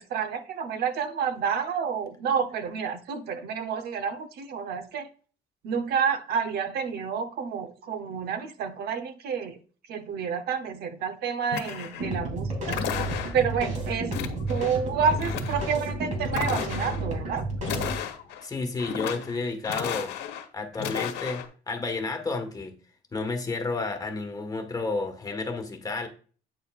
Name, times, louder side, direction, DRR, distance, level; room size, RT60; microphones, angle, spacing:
voice 1, 0.0-5.1 5.6-9.6 9.9-12.8 13.3-14.2 14.5-17.4, right 6 dB, 70° right, 0.9 m, -29 dB
sound 1, 11.5-12.2 12.7-13.6 14.1-14.7 15.0-15.8 16.3-17.0 17.6-18.4 18.8-19.4 19.6-20.5 20.7-21.5, left 9 dB, 85° left, 1.1 m, -33 dB
sound 2, 12.0-18.0, right 2 dB, 45° right, 2.7 m, -31 dB
voice 2, 18.4-20.1 20.5-22.7 23.1-26.1, left 3 dB, 20° left, 1.4 m, -31 dB
8.6 x 6.8 x 2.4 m
cardioid pair, 110°, 17 cm